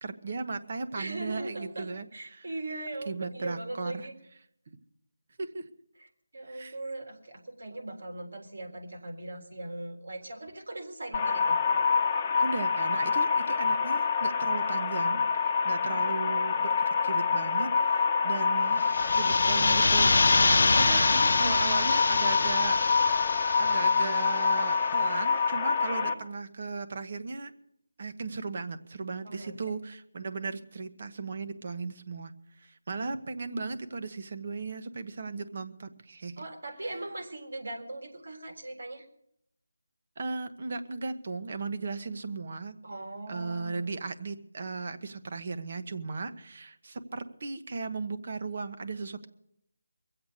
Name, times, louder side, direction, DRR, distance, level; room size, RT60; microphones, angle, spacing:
voice 1, 0.0-2.5 3.1-4.1 5.4-5.7 6.5-6.8 12.4-18.9 19.2-27.5 28.0-32.3 32.6-36.4 40.2-42.7 43.3-49.3, right 4 dB, 45° right, 9 dB, 1.1 m, -36 dB
voice 2, 0.9-4.1 6.3-11.6 15.8-16.2 25.8-26.1 29.2-29.6 36.4-39.0 42.8-44.0, right 2 dB, 75° right, 2 dB, 3.7 m, -40 dB
sound 1, 11.1-26.1, left 5 dB, 20° left, 1.1 m, -26 dB
sound 2, 18.8-24.5, left 3 dB, 65° left, 0.7 m, -26 dB
22.5 x 7.9 x 6.7 m, 0.75 s
figure-of-eight pair, 165°, 0 cm